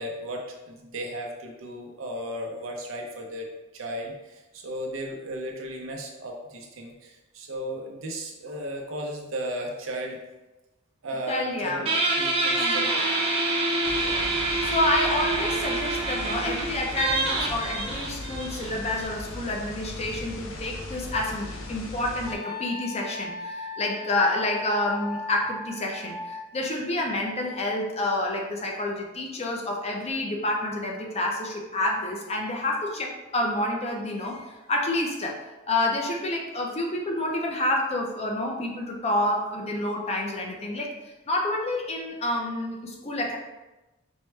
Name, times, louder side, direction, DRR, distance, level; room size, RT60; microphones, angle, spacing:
voice 1, 0.0-3.5 3.7-10.2 11.0-13.0 14.0-14.2 15.4-15.5, right 1 dB, 85° right, 1 dB, 0.7 m, -35 dB
voice 2, 11.3-11.9 12.6-12.8 14.6-35.4 35.7-43.4, left 1 dB, 35° left, 0 dB, 0.6 m, -28 dB
Guitar, 11.9-19.0, right 2 dB, 30° right, 0.8 m, -26 dB
sound 1, 13.8-22.3, left 2 dB, 80° left, 0.6 m, -38 dB
Wind instrument woodwind instrument, 22.3-26.5, left 3 dB, 5° left, 0.9 m, -37 dB
4.4 x 2.2 x 3.2 m, 1.1 s
head